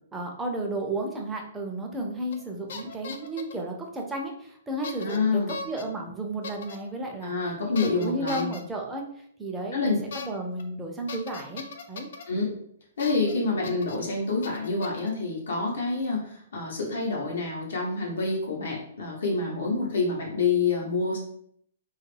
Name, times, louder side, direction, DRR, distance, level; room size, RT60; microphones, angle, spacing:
voice 1, 0.1-7.3 7.8-9.0 9.4-12.1, right 1 dB, 10° right, 0 dB, 0.4 m, -33 dB
sound 1, 2.3-2.4 2.7-3.6 4.8-5.2 5.5-5.8 6.4-6.8 7.7-8.6 10.1-10.3 10.6-10.7 11.1-12.2 13.0-13.3 13.6-14.0 14.4-15.1, left 5 dB, 65° left, 0.3 m, -38 dB
voice 2, 5.0-5.5 7.2-8.5 9.7-10.0 12.3-12.6 13.0-21.2, left 3 dB, 80° left, -2 dB, 0.7 m, -27 dB
2.3 x 2.0 x 3.1 m, 0.67 s
hypercardioid pair, 150°, 0 cm